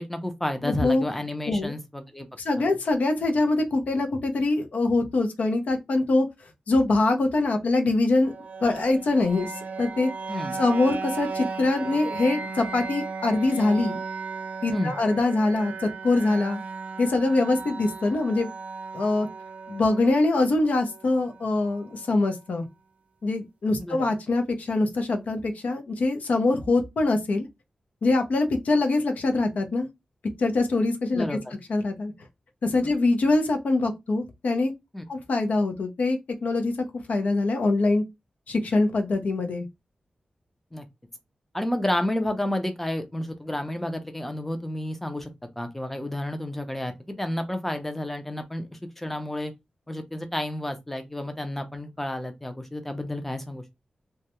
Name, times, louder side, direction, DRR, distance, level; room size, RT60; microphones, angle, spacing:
voice 1, 0.0-2.3 10.3-10.6 14.7-14.9 23.8-24.1 31.1-31.6 34.9-35.0 40.7-40.9 41.5-45.3 45.6-49.5 49.9-53.6, left 1 dB, 10° left, 0.4 m, -31 dB
voice 2, 0.6-1.0 1.5-1.7 2.4-6.3 6.7-8.3 8.6-9.5 9.8-10.1 10.6-14.0 14.6-16.6 17.0-18.5 18.9-19.3 19.7-22.6 23.2-27.5 28.0-29.9 30.4-31.4 31.7-32.1 32.6-34.7 35.1-36.7 37.1-38.0 38.5-39.7, left 2 dB, 75° left, 0.5 m, -23 dB
sound 1, 8.2-22.2, right 4 dB, 65° right, 0.3 m, -36 dB
2.3 x 2.1 x 2.8 m
wide cardioid pair, 115°, 3 cm